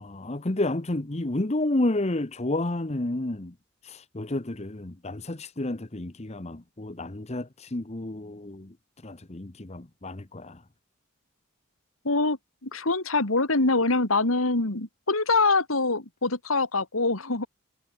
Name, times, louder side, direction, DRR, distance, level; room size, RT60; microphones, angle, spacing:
voice 1, 0.0-3.5 3.8-8.7 9.0-10.6, left 2 dB, 30° left, 1.0 m, -30 dB
voice 2, 12.0-17.5, left 3 dB, 85° left, 2.8 m, -24 dB
head